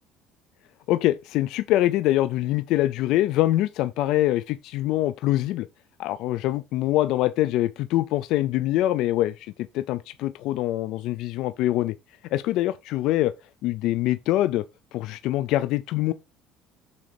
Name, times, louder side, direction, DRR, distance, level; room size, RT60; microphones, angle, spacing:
voice 1, 0.9-5.7 6.0-11.9 12.3-13.3 13.6-14.6 14.9-16.1, left 15 dB, 70° left, 0.4 m, -24 dB
6.3 x 4.2 x 5.1 m
supercardioid pair, 105°, 0 cm